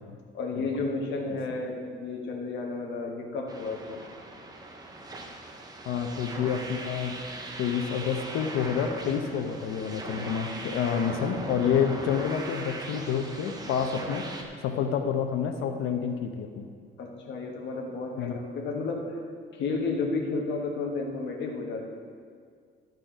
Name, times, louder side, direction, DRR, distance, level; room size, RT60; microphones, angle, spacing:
voice 1, 0.3-4.0 10.9-11.0 17.0-19.2 19.5-21.9, left 3 dB, 60° left, 0 dB, 1.4 m, -32 dB
sound 1, 3.5-14.4, right 2 dB, 20° right, 0.8 m, -40 dB
voice 2, 5.9-7.2 7.6-14.3 14.6-16.7 18.2-18.4, left 7 dB, 90° left, 6 dB, 0.9 m, -28 dB
12.0 x 6.6 x 5.1 m, 2.1 s
cardioid pair, 165°, 21 cm